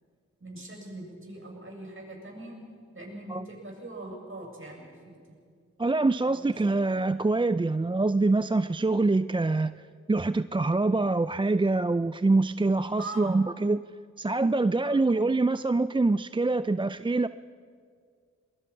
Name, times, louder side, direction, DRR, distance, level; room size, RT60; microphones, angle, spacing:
voice 1, 0.4-2.6 2.9-5.2 6.3-6.5 13.0-13.3 14.8-15.0, right 2 dB, 45° right, 0 dB, 7.5 m, -42 dB
voice 2, 5.8-9.7 10.1-13.8 14.2-17.3, right 3 dB, 15° right, 13 dB, 0.5 m, -25 dB
23.0 x 20.0 x 5.9 m, 2.1 s
cardioid pair, 40°, 29 cm